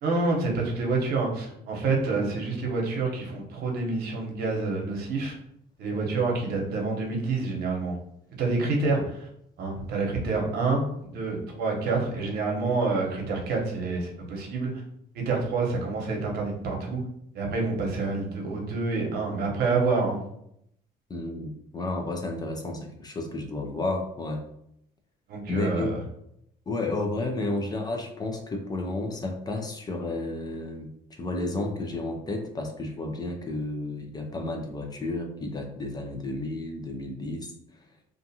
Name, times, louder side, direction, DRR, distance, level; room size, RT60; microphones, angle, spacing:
voice 1, 0.0-5.3 5.8-7.9 8.4-9.3 9.6-10.8 11.1-14.7 15.1-17.0 17.3-20.2 25.3-25.9, right 3 dB, 70° right, 0 dB, 0.8 m, -27 dB
voice 2, 21.1-24.4 25.5-25.9 26.7-37.5, left 2 dB, 25° left, 3 dB, 0.4 m, -32 dB
2.5 x 2.4 x 2.7 m, 0.74 s
cardioid pair, 110°, 17 cm